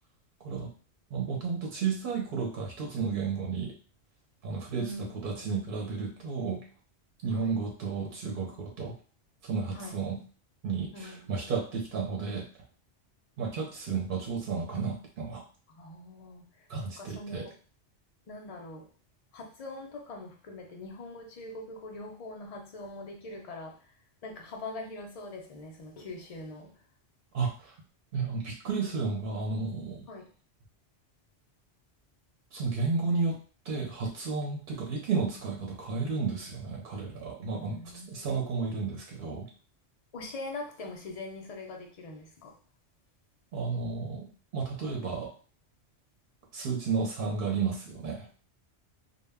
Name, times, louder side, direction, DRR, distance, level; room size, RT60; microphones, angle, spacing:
voice 1, 1.1-3.8 4.4-6.7 7.2-9.0 9.4-10.2 10.6-12.5 13.4-15.4 16.7-17.5 27.3-27.8 28.1-30.0 32.5-39.5 43.5-45.3 46.5-48.3, right 5 dB, 55° right, 0 dB, 0.7 m, -32 dB
voice 2, 4.8-5.5 7.3-7.6 9.7-10.0 10.9-11.3 15.8-16.6 17.0-17.5 18.3-18.9 19.3-23.9 24.2-26.7 30.1-30.3 37.5-38.3 40.1-42.6, left 2 dB, 65° left, 2 dB, 0.3 m, -43 dB
2.1 x 2.1 x 3.3 m, 0.38 s
omnidirectional pair, 1.2 m